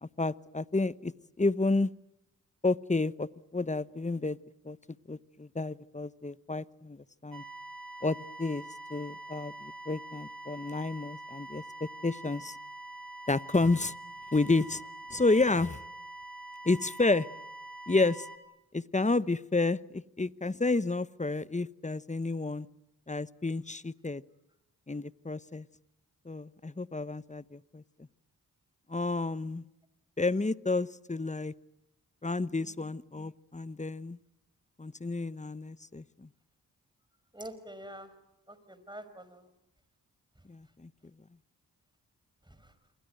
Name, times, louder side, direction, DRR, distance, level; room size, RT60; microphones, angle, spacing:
voice 1, 0.0-1.9 2.6-4.4 4.6-4.8 5.1-7.4 8.0-8.6 8.9-12.6 13.3-13.9 14.3-14.8 15.1-15.8 16.6-17.3 17.9-18.3 18.7-22.7 23.1-24.2 24.9-25.6 26.2-27.8 28.9-29.6 30.2-31.5 32.2-34.2 34.8-36.3 40.5-40.9, left 3 dB, 20° left, 17 dB, 1.0 m, -30 dB
sound 1, 7.3-18.4, right 2 dB, 55° right, 6.2 m, -45 dB
voice 2, 37.3-38.1 38.5-39.5 42.5-42.7, right 1 dB, 10° right, 12 dB, 5.6 m, -46 dB
27.5 x 23.0 x 9.3 m, 0.86 s
supercardioid pair, 40°, 39 cm